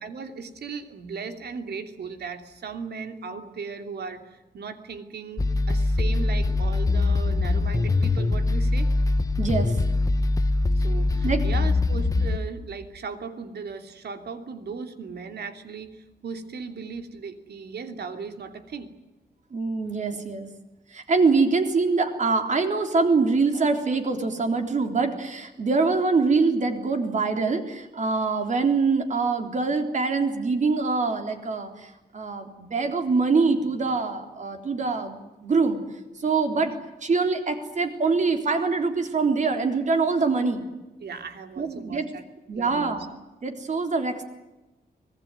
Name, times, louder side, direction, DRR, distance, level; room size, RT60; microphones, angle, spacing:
voice 1, 0.0-8.9 10.7-18.9 36.5-36.7 41.0-42.2 42.5-42.9, right 5 dB, 75° right, 7 dB, 2.9 m, -37 dB
sound 1, 5.4-12.4, left 2 dB, 20° left, 1.1 m, -23 dB
voice 2, 9.4-9.8 11.2-11.5 19.5-20.5 20.9-35.8 36.2-36.7 37.0-40.6 41.6-42.1 42.5-43.1 43.4-44.2, right 4 dB, 45° right, 5 dB, 3.7 m, -24 dB
25.5 x 19.0 x 9.4 m, 1.1 s
wide cardioid pair, 175°, 17 cm